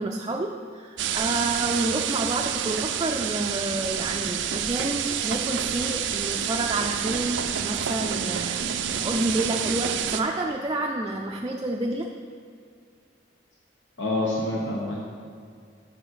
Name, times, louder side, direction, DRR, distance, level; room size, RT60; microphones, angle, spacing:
voice 1, 0.0-8.6 8.9-12.1, right 2 dB, 20° right, 0 dB, 0.4 m, -29 dB
sound 1, 1.0-10.2, right 8 dB, 80° right, 0.4 m, -28 dB
voice 2, 14.0-15.0, left 1 dB, 85° left, -3 dB, 1.0 m, -27 dB
7.0 x 5.8 x 6.3 m, 2.1 s
head